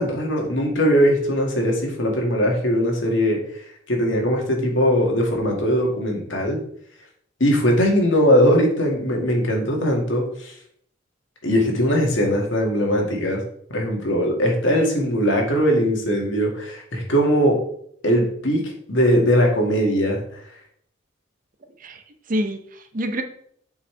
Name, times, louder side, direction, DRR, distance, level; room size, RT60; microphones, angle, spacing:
voice 1, 0.0-3.4 3.9-6.6 7.4-10.5 11.4-13.4 13.7-17.6 18.0-18.6 18.9-20.2, equal, 85° left, 0 dB, 2.0 m, -20 dB
voice 2, 21.8-23.2, equal, 45° right, 7 dB, 0.7 m, -27 dB
8.3 x 5.6 x 3.3 m, 0.66 s
head